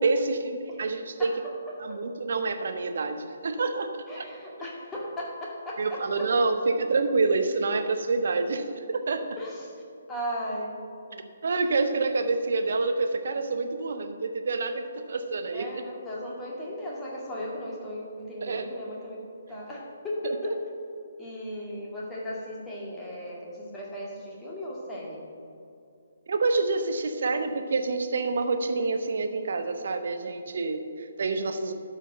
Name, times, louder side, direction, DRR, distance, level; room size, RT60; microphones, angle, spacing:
voice 1, 0.0-1.3 1.8-4.3 5.8-9.3 11.4-15.7 18.4-18.6 20.2-20.3 26.3-31.7, right 3 dB, 50° right, 7 dB, 0.9 m, -27 dB
voice 2, 1.2-1.8 4.1-6.5 9.4-9.8 10.1-10.8 11.1-11.2 15.5-19.2 19.5-20.6 21.2-25.3, equal, 10° left, -5 dB, 2.1 m, -36 dB
12.0 x 5.0 x 6.4 m, 2.5 s
figure-of-eight pair, 135°, 0 cm